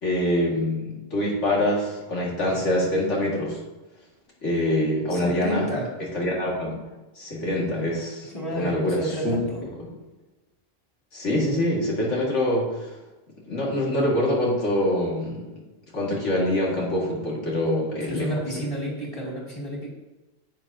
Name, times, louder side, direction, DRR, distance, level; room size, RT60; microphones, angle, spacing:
voice 1, 0.0-3.6 4.4-5.7 6.1-6.7 7.2-9.4 9.8-9.9 11.1-12.9 13.5-15.4 15.9-18.3, left 1 dB, 75° left, -4 dB, 2.6 m, -25 dB
voice 2, 5.1-5.9 8.3-9.6 18.1-19.9, right 1 dB, 30° left, -4 dB, 3.0 m, -30 dB
10.5 x 8.1 x 2.9 m, 1.1 s
omnidirectional pair, 1.2 m